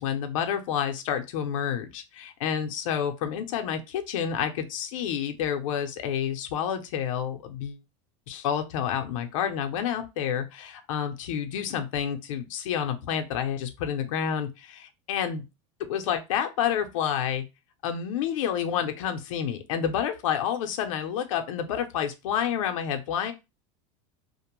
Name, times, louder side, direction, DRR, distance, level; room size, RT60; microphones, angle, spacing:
voice 1, 0.0-7.8 8.3-15.4 15.8-17.4 17.8-23.3, left 8 dB, 85° left, 6 dB, 0.6 m, -29 dB
2.5 x 2.1 x 3.0 m, 0.24 s
supercardioid pair, 175°, 17 cm